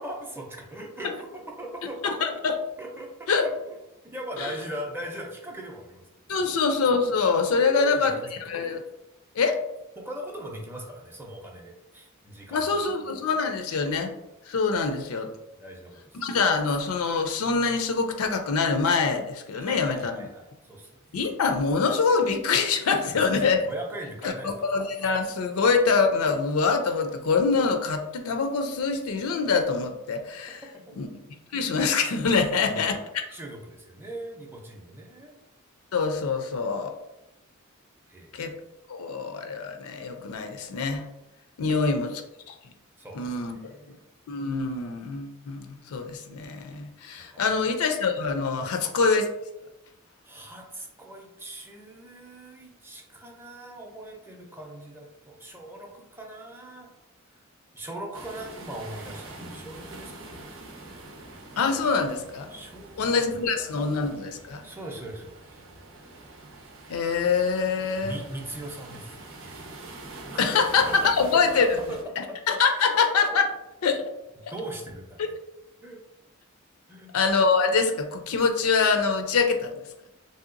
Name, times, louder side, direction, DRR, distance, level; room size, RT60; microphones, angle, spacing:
voice 1, 0.0-2.0 2.8-3.5 4.1-6.0 6.4-6.5 7.6-8.3 10.0-12.8 15.6-16.2 19.5-21.2 23.0-23.4 23.7-24.7 30.7-31.0 32.5-32.9 33.3-35.4 38.1-38.5 41.7-42.0 43.0-44.0 47.2-47.5 48.6-48.7 50.2-56.9 57.3-57.4 57.7-60.4 62.5-63.4 64.6-65.6 68.0-69.2 70.3-70.6 70.9-72.0 72.3-72.4 74.5-75.4 75.8-76.0 76.9-77.1, right 1 dB, 10° right, 0 dB, 0.5 m, -40 dB
voice 2, 2.0-2.5 3.3-3.5 4.4-4.5 6.3-8.1 8.4-8.8 9.4-9.6 12.5-14.1 14.5-15.3 16.1-20.3 21.1-23.6 24.2-30.6 30.9-31.1 31.5-33.2 35.9-36.9 38.3-38.5 38.9-41.1 41.6-42.1 43.1-43.6 44.3-49.3 61.6-62.5 63.0-64.6 66.9-68.2 70.4-71.8 72.2-73.5 73.8-74.0 74.4-74.5 77.1-79.8, left 4 dB, 80° left, 6 dB, 0.4 m, -25 dB
sound 1, 58.1-72.0, right 2 dB, 65° right, 0.6 m, -45 dB
3.3 x 2.7 x 2.5 m, 0.91 s
head